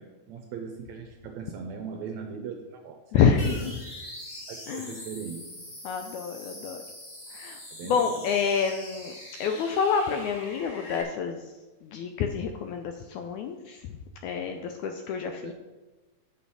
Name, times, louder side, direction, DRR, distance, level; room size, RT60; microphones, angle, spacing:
voice 1, 0.0-3.6 4.5-5.4 7.7-8.3 15.4-15.5, right 6 dB, 75° right, 4 dB, 1.7 m, -39 dB
voice 2, 3.1-3.7 4.7-5.0 5.8-6.8 7.3-9.1 9.4-11.5 11.8-15.5, left 6 dB, 80° left, 5 dB, 1.7 m, -28 dB
sound 1, 3.4-11.0, left 1 dB, 30° left, 1.7 m, -43 dB
7.6 x 7.3 x 5.5 m, 1.2 s
omnidirectional pair, 3.9 m